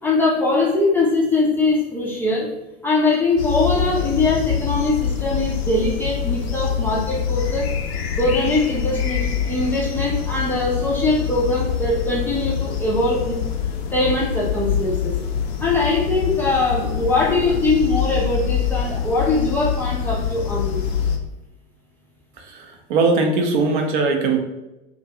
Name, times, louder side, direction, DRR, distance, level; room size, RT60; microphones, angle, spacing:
voice 1, 0.0-2.5 2.8-7.7 8.1-13.4 13.9-15.1 15.6-20.8, left 2 dB, 5° left, -6 dB, 0.4 m, -21 dB
sound 1, 3.4-21.2, left 8 dB, 70° left, 0.5 m, -25 dB
voice 2, 22.4-24.4, right 3 dB, 50° right, 4 dB, 0.5 m, -20 dB
2.4 x 2.2 x 2.8 m, 0.99 s
figure-of-eight pair, 85°, 32 cm